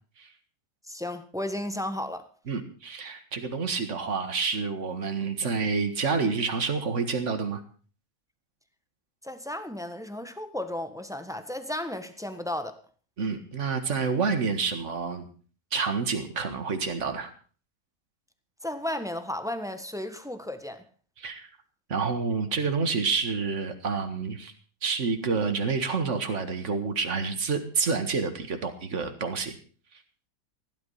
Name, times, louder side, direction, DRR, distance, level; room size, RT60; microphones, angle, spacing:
voice 1, 0.9-2.3 9.2-12.8 18.6-20.8, left 1 dB, ahead, 1.3 m, -34 dB
voice 2, 2.5-7.6 13.2-15.3 15.7-17.3 21.2-21.5 21.9-24.5 24.8-29.6, right 5 dB, 50° right, 2.1 m, -28 dB
16.0 x 11.5 x 5.7 m
omnidirectional pair, 1.6 m